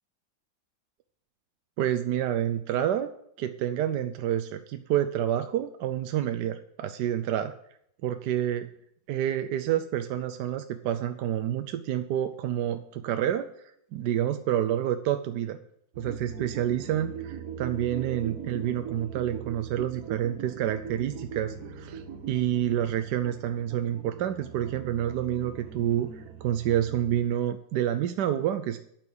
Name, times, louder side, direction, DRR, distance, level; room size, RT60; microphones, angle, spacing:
voice 1, 1.8-3.1 3.4-7.5 8.0-8.7 9.1-13.5 13.9-15.6 16.0-28.8, right 11 dB, 70° right, 8 dB, 1.1 m, -28 dB
sound 1, 15.9-27.2, right 7 dB, 55° right, 1.5 m, -41 dB
9.1 x 6.1 x 7.9 m, 0.71 s
omnidirectional pair, 2.0 m